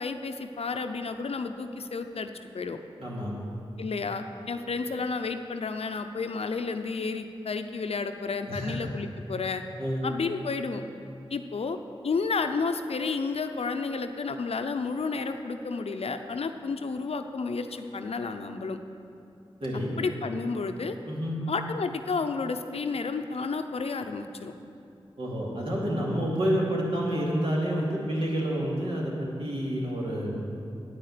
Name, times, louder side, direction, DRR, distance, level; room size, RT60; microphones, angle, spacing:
voice 1, 0.0-2.8 3.8-9.6 10.0-10.8 11.3-11.8 12.0-18.8 20.0-21.0 21.5-24.5, left 4 dB, 80° left, 7 dB, 0.6 m, -31 dB
voice 2, 3.0-3.3 8.5-8.7 9.8-10.0 19.6-19.9 21.1-21.4 25.2-30.3, equal, 65° right, -4 dB, 2.7 m, -29 dB
9.8 x 9.3 x 6.8 m, 2.6 s
wide cardioid pair, 90°, 10 cm